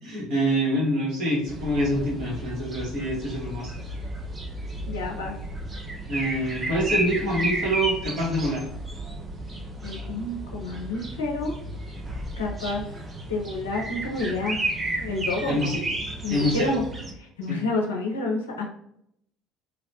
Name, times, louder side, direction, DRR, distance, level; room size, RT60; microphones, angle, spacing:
voice 1, 0.0-3.7 6.1-8.6 15.5-15.8 16.3-16.8 17.5-17.6, equal, 55° right, -4 dB, 1.3 m, -26 dB
sound 1, 1.5-17.1, right 1 dB, 25° right, 0.5 m, -33 dB
voice 2, 4.9-5.3 9.8-11.5 12.4-12.8 13.3-14.6 15.0-15.8 16.2-16.8 17.4-18.6, left 2 dB, 75° left, 0 dB, 0.5 m, -29 dB
2.9 x 2.0 x 2.7 m, 0.74 s
figure-of-eight pair, 60°, 0 cm